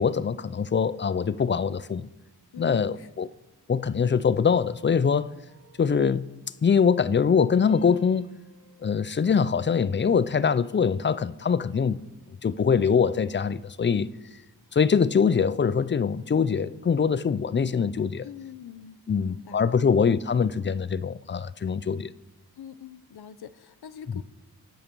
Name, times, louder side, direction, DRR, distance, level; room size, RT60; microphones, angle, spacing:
voice 1, 0.0-2.1 2.6-3.3 3.7-5.3 5.8-8.3 8.8-12.0 12.4-14.1 14.7-18.3 19.1-22.1, left 6 dB, 30° left, 0.4 m, -23 dB
voice 2, 2.5-3.1 18.2-20.0 22.6-24.2, left 8 dB, 80° left, 0.8 m, -44 dB
sound 1, 5.5-7.4 7.7-10.2 10.7-11.1, left 4 dB, 15° left, 2.5 m, -56 dB
24.5 x 8.9 x 5.4 m
wide cardioid pair, 120°, 38 cm